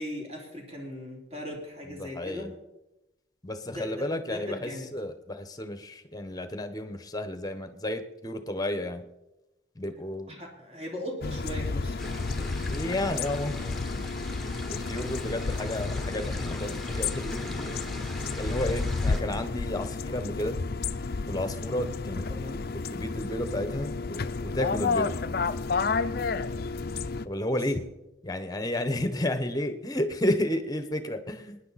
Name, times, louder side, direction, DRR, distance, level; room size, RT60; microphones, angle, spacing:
voice 1, 0.0-2.5 3.6-4.9 10.3-12.0 22.3-22.6 27.5-27.6, equal, 35° right, -1 dB, 3.4 m, -38 dB
voice 2, 1.9-2.5 3.4-9.0 9.7-10.4 12.7-13.5 14.7-18.0 18.3-20.6 21.3-22.3 22.9-25.2 27.2-27.8 28.2-31.6, left 1 dB, 20° left, 9 dB, 1.1 m, -32 dB
sound 1, 11.2-27.3, left 4 dB, 55° left, 0.5 m, -31 dB
sound 2, 12.0-19.2, left 1 dB, ahead, 1.3 m, -41 dB
24.5 x 10.0 x 4.2 m, 0.95 s
head